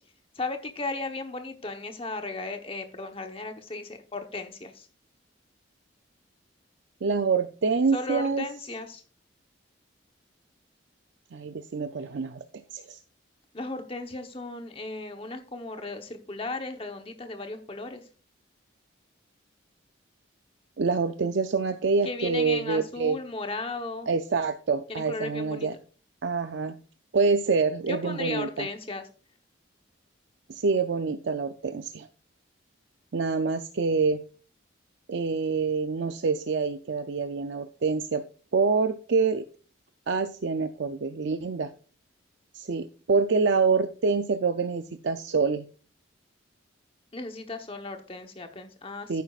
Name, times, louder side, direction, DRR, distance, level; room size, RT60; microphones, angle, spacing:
voice 1, 0.3-4.9 7.9-9.0 13.5-18.1 22.0-24.1 24.9-25.7 27.9-29.1 47.1-49.2, left 2 dB, 30° left, 5 dB, 1.0 m, -35 dB
voice 2, 7.0-8.5 11.3-13.0 20.8-23.2 24.1-25.7 26.2-26.8 27.1-28.7 30.5-32.1 33.1-34.2 35.1-38.2 38.5-39.5 40.1-41.7 42.5-45.6 49.1-49.2, right 4 dB, 65° right, 8 dB, 0.5 m, -26 dB
11.5 x 9.3 x 2.4 m, 0.39 s
head